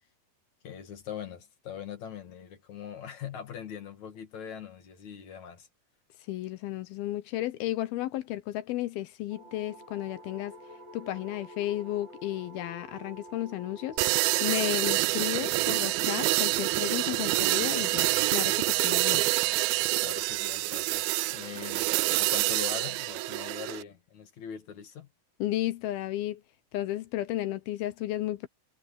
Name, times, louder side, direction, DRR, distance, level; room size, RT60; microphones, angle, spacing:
voice 1, 0.6-5.7 20.0-21.9 22.2-25.1, left 8 dB, 50° left, 3.1 m, -42 dB
voice 2, 6.3-10.5 10.9-19.3 25.4-26.4 26.7-28.5, left 14 dB, 75° left, 2.6 m, -33 dB
sound 1, 9.3-18.2, right 1 dB, 25° right, 4.5 m, -49 dB
sound 2, 14.0-23.8, right 21 dB, 85° right, 2.1 m, -27 dB
omnidirectional pair, 4.8 m